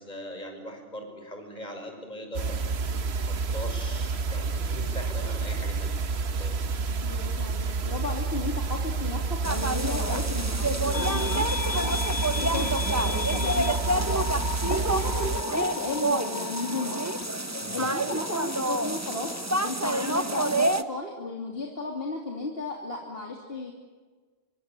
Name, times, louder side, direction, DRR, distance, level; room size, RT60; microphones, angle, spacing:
voice 1, 0.0-2.6 2.8-6.0 6.3-6.6 17.6-17.9, equal, 45° left, 4 dB, 6.4 m, -41 dB
sound 1, 2.3-15.4, right 4 dB, 80° right, 1.3 m, -29 dB
voice 2, 7.0-13.8 14.2-17.0 17.3-19.3 19.6-23.7, left 2 dB, 65° left, 0 dB, 3.3 m, -34 dB
sound 2, 9.4-20.8, right 2 dB, 15° right, 1.1 m, -29 dB
sound 3, 10.9-20.3, left 6 dB, 85° left, 1.5 m, -36 dB
26.0 x 24.0 x 8.5 m, 1.4 s
omnidirectional pair, 1.1 m